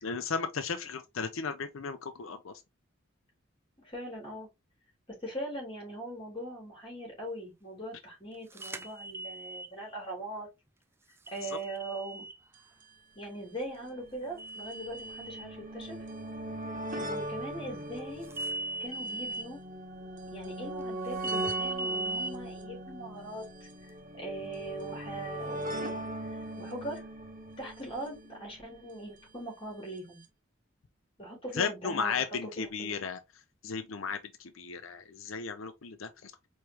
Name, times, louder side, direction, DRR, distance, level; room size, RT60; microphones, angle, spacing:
voice 1, 0.0-2.5 11.4-11.6 31.5-33.2 33.6-36.3, left 5 dB, 85° left, 0.6 m, -35 dB
voice 2, 3.8-4.5 5.1-10.5 11.3-12.3 13.1-16.0 17.0-18.3 18.8-19.6 20.3-23.7 24.1-26.0 26.3-27.0 27.6-30.2 31.2-33.0, right 1 dB, 25° left, 2.9 m, -41 dB
sound 1, 8.6-9.7 11.3-12.4 14.4-15.5 18.3-19.5 21.2-22.3, right 2 dB, 10° right, 0.3 m, -37 dB
sound 2, 12.5-12.6 12.8-12.9 13.8-29.0 30.0-30.1 30.2-30.3, right 1 dB, 40° right, 0.9 m, -40 dB
4.8 x 3.2 x 2.8 m
head